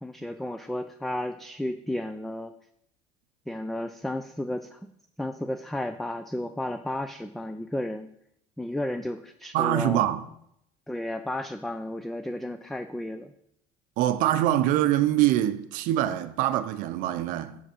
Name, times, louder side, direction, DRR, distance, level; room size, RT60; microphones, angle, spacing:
voice 1, 0.0-2.5 3.5-4.9 5.2-8.1 8.6-10.0 10.9-13.3, left 1 dB, ahead, 0.3 m, -33 dB
voice 2, 9.5-10.2 14.0-17.6, right 13 dB, 65° right, 0.6 m, -24 dB
6.8 x 5.9 x 6.1 m
cardioid pair, 140°, 15 cm